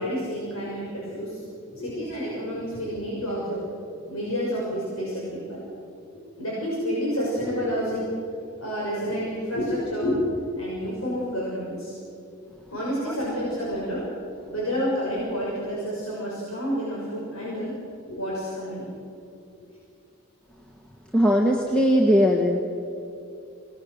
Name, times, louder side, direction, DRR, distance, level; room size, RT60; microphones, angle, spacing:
voice 1, 0.0-1.4 1.7-3.6 4.1-5.6 6.4-8.1 8.6-11.9 12.7-14.0 14.5-17.7 18.1-18.9, equal, 80° left, -5 dB, 6.2 m, -29 dB
voice 2, 21.1-22.6, equal, 5° left, 0 dB, 1.4 m, -19 dB
27.5 x 19.0 x 6.5 m, 2.7 s
head